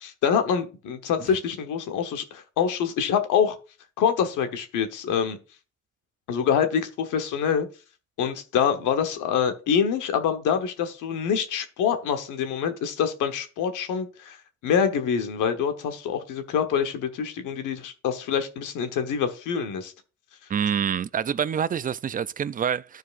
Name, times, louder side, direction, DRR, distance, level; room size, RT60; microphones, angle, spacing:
voice 1, 0.0-3.6 4.0-5.4 6.3-7.7 8.2-14.4 14.6-19.9, left 7 dB, 90° left, 1.1 m, -25 dB
voice 2, 20.5-23.0, right 8 dB, 30° right, 0.3 m, -27 dB
13.0 x 4.7 x 2.5 m
cardioid pair, 90°, 30 cm